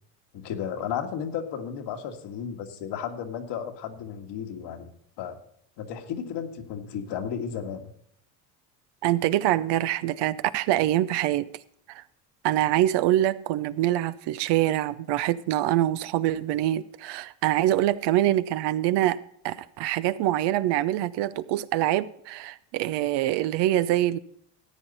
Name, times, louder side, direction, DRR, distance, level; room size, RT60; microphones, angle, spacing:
voice 1, 0.3-4.9 5.2-5.4 5.8-7.9, left 8 dB, 65° left, 1.8 m, -34 dB
voice 2, 9.0-11.4 11.9-12.0 12.4-19.2 19.4-24.2, right 14 dB, 65° right, 0.7 m, -25 dB
14.5 x 8.9 x 4.1 m
supercardioid pair, 85°, 44 cm